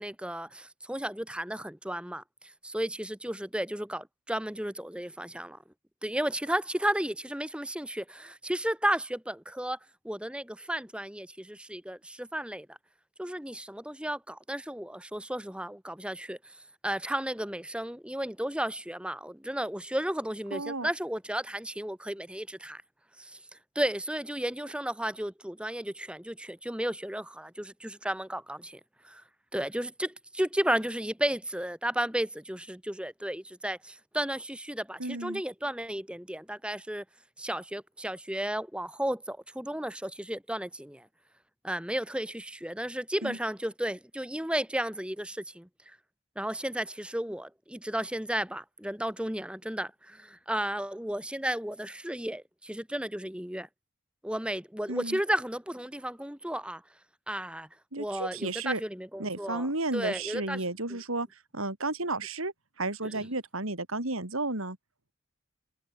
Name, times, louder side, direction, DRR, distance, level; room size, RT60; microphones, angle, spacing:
voice 1, 0.0-2.2 2.6-5.6 6.0-9.8 10.0-12.8 13.2-16.5 16.8-22.8 23.2-23.4 23.7-29.2 29.5-37.0 37.4-41.1 41.6-46.0 46.3-53.7 54.2-56.8 57.3-57.7 58.0-59.7 59.9-60.6 60.9-61.0 63.1-63.3, right 1 dB, 5° right, 1.5 m, -33 dB
voice 2, 20.5-20.9 35.0-35.4 43.2-43.4 54.9-55.2 57.9-58.8 59.2-61.3 61.5-64.8, right 2 dB, 85° right, 4.6 m, -33 dB
head